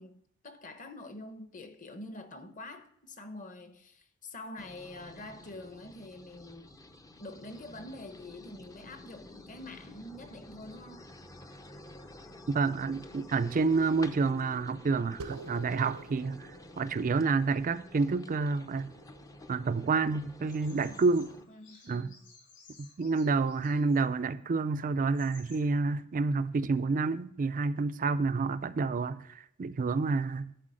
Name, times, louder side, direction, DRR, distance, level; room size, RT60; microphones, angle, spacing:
voice 1, 0.0-6.8 7.2-11.1 20.6-21.0 21.5-22.3, left 2 dB, 35° left, 1.0 m, -46 dB
sound 1, 4.6-21.5, left 1 dB, 15° left, 0.5 m, -51 dB
voice 2, 12.5-18.9 19.5-21.3 21.9-22.1 23.0-30.5, right 4 dB, 35° right, 0.4 m, -29 dB
sound 2, 15.2-20.0, right 3 dB, 85° right, 0.8 m, -49 dB
Bird vocalization bird call bird song, 20.5-24.0 24.7-24.8 25.0-25.6, left 4 dB, 55° left, 3.4 m, -57 dB
11.5 x 4.4 x 6.3 m
head